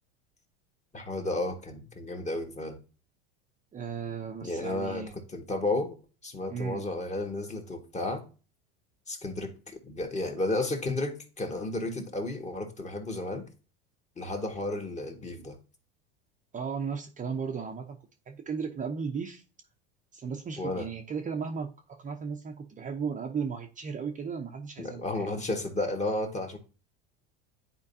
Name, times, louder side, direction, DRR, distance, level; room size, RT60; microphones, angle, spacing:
voice 1, 0.9-2.8 4.4-5.1 5.3-5.9 6.2-8.2 9.1-13.5 14.2-15.6 20.6-20.9 24.8-26.6, left 2 dB, 20° left, 1.7 m, -32 dB
voice 2, 3.7-5.1 6.5-6.8 16.5-18.0 18.3-19.4 20.1-25.3, right 6 dB, 25° right, 0.7 m, -35 dB
9.7 x 4.5 x 2.7 m
supercardioid pair, 100°, 32 cm